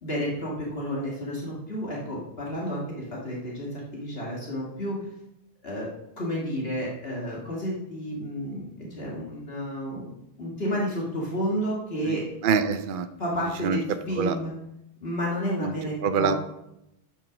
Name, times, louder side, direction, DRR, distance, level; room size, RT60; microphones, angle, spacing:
voice 1, 0.0-5.0 5.6-5.9 6.2-10.1 10.4-12.2 13.2-13.8 14.1-14.5 15.0-16.4, equal, 65° left, -4 dB, 2.0 m, -31 dB
voice 2, 12.1-13.1 13.6-13.8 14.1-14.4 15.6-15.7 16.0-16.4, right 6 dB, 55° right, 9 dB, 0.8 m, -25 dB
8.9 x 5.6 x 6.1 m, 0.85 s
omnidirectional pair, 1.1 m